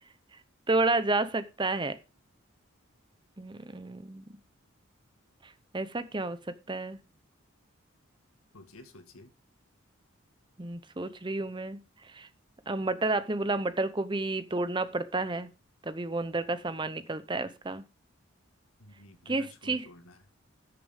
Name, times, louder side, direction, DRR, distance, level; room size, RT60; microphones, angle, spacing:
voice 1, 0.7-2.0 3.4-4.2 5.7-6.4 6.7-7.0 10.6-11.8 12.1-12.3 12.7-15.5 15.8-17.8 19.3-19.9, right 2 dB, 20° right, 0.7 m, -30 dB
voice 2, 8.5-9.3 18.8-20.2, left 2 dB, 90° left, 1.8 m, -51 dB
14.0 x 6.8 x 3.6 m
head